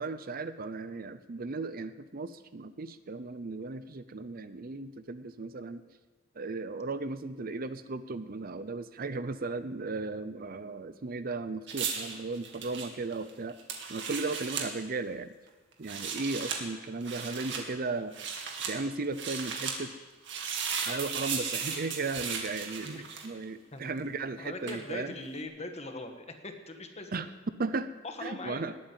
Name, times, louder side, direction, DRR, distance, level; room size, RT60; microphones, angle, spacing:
voice 1, 0.0-5.8 6.3-13.6 13.9-15.4 15.8-18.2 18.7-19.9 20.8-25.1 27.1-27.3 27.6-27.9 28.2-28.7, right 3 dB, 50° right, 13 dB, 0.7 m, -36 dB
sound 1, 11.7-14.7 15.7-16.6 17.0-17.6 18.1-18.7 19.1-19.8 20.2-23.4 24.7-24.8, right 6 dB, 65° right, 2.3 m, -36 dB
voice 2, 24.4-27.2 28.0-28.7, left 2 dB, 35° left, 6 dB, 1.6 m, -41 dB
19.5 x 8.9 x 7.6 m, 1.3 s
head